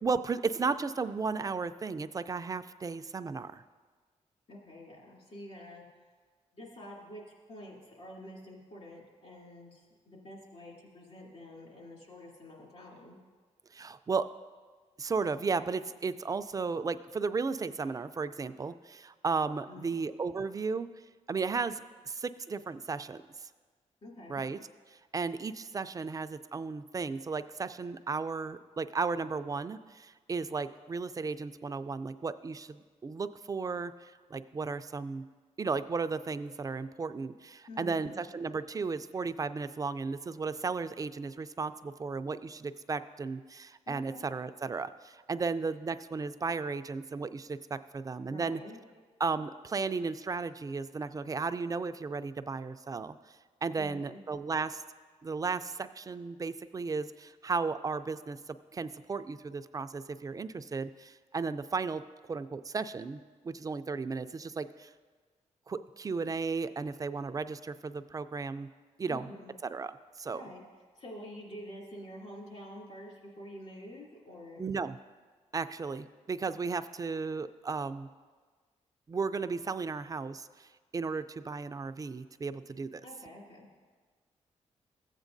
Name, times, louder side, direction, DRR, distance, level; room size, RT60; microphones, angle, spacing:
voice 1, 0.0-3.6 13.7-14.3 15.0-20.9 21.3-21.8 22.1-23.2 24.3-24.6 25.1-35.2 35.6-48.6 49.2-53.2 53.6-54.8 55.2-62.0 62.3-63.2 63.4-64.9 65.7-68.7 69.0-69.3 69.6-70.4 74.6-75.0 75.5-78.1 79.1-80.7 80.9-83.0, right 4 dB, 30° right, 11 dB, 0.3 m, -34 dB
voice 2, 4.5-5.8 6.5-7.2 7.5-13.2 19.7-20.0 24.0-24.4 37.7-38.2 43.9-44.3 48.3-48.8 53.8-54.2 69.1-69.5 70.3-70.6 70.9-74.6 83.0-83.7, left 1 dB, 55° left, -2 dB, 2.5 m, -48 dB
14.5 x 8.1 x 2.6 m, 1.4 s
cardioid pair, 85°, 12 cm